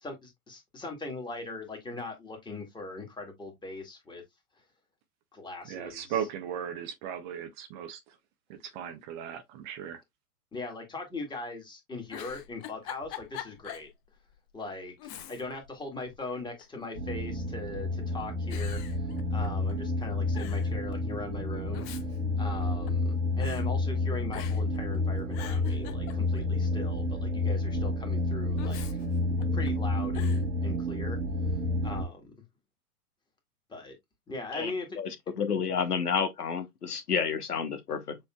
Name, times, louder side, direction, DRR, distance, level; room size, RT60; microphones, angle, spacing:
voice 1, 0.0-4.2 5.3-6.2 10.5-13.9 14.5-21.9 22.4-28.8 29.5-31.2 31.8-32.3 33.7-34.0 34.3-34.9, left 3 dB, 10° left, 1.8 m, -40 dB
voice 2, 5.6-8.1 8.5-10.0, right 9 dB, 30° right, 0.6 m, -37 dB
Giggle, 12.1-13.9 14.3-14.4 15.0-15.7 16.0-16.8 17.6-18.0 18.5-19.7 20.0-20.1 20.3-20.7 21.5-23.1 23.4-23.6 24.3-24.8 25.1-26.5 28.6-29.7 30.1-30.4, left 12 dB, 30° left, 0.7 m, -44 dB
sound 1, 16.9-32.0, left 2 dB, 85° right, 1.5 m, -30 dB
voice 3, 35.0-38.2, left 6 dB, 85° left, 1.2 m, -30 dB
7.0 x 3.2 x 2.3 m
hypercardioid pair, 110°, 45 cm